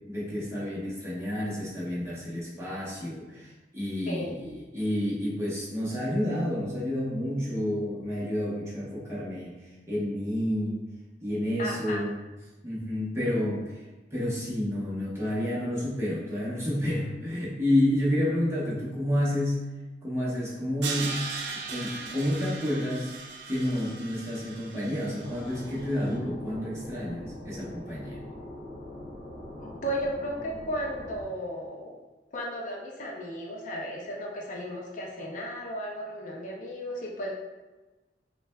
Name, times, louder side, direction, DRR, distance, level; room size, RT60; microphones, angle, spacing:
voice 1, 0.1-9.5 9.9-10.8 11.2-12.2 12.6-13.8 14.1-19.6 20.0-21.2 21.7-23.1 23.5-28.2, left 1 dB, 15° right, -7 dB, 0.9 m, -30 dB
voice 2, 4.1-4.4 11.6-12.0 29.6-32.0 32.3-37.3, equal, 45° left, -1 dB, 0.4 m, -34 dB
Crash cymbal, 20.8-25.9, right 4 dB, 75° right, 0.5 m, -38 dB
sound 1, 25.2-31.2, left 1 dB, 80° left, 0.9 m, -42 dB
5.8 x 2.2 x 2.2 m, 1.1 s
head